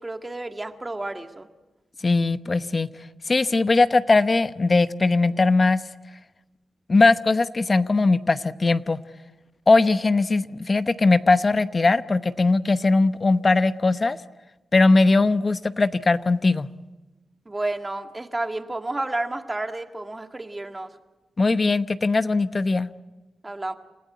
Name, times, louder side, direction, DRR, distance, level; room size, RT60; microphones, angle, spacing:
voice 1, 0.0-1.5 17.5-20.9 23.4-23.7, right 2 dB, 25° right, 6 dB, 2.0 m, -31 dB
voice 2, 2.0-2.9 3.3-5.8 6.9-9.0 9.7-14.2 14.7-16.7 21.4-22.9, left 3 dB, 40° left, 12 dB, 0.9 m, -20 dB
28.5 x 15.5 x 9.1 m, 1.1 s
cardioid pair, 65°, 0 cm